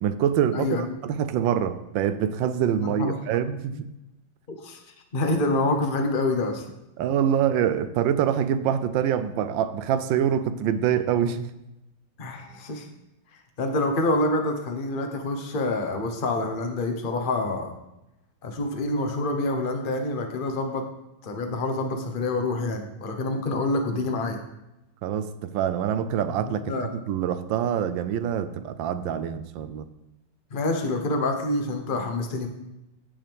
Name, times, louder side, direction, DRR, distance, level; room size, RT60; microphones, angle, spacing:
voice 1, 0.0-3.9 7.0-11.5 25.0-29.9, right 9 dB, 75° right, 12 dB, 1.2 m, -25 dB
voice 2, 0.5-1.0 2.8-3.2 3.7-3.8 4.5-4.8 5.1-6.6 12.2-12.9 13.6-17.7 18.4-20.9 21.2-24.4 26.5-26.9 30.5-32.5, left 2 dB, 35° left, 4 dB, 1.0 m, -27 dB
15.5 x 5.5 x 3.5 m, 0.93 s
omnidirectional pair, 2.3 m